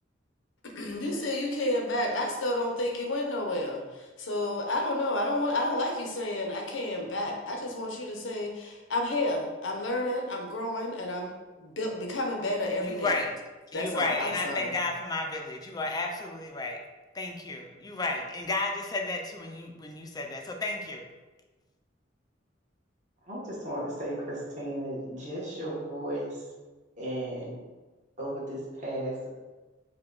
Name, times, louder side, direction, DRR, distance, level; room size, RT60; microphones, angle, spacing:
voice 1, 0.8-13.2 13.7-14.7, left 1 dB, 90° left, 1 dB, 0.8 m, -31 dB
voice 2, 12.8-13.3 13.7-16.8 17.1-21.1, left 3 dB, 20° left, 2 dB, 0.4 m, -32 dB
voice 3, 23.3-26.4 27.0-27.6 28.2-29.3, right 1 dB, 40° right, -6 dB, 1.2 m, -35 dB
4.6 x 2.3 x 3.8 m, 1.2 s
head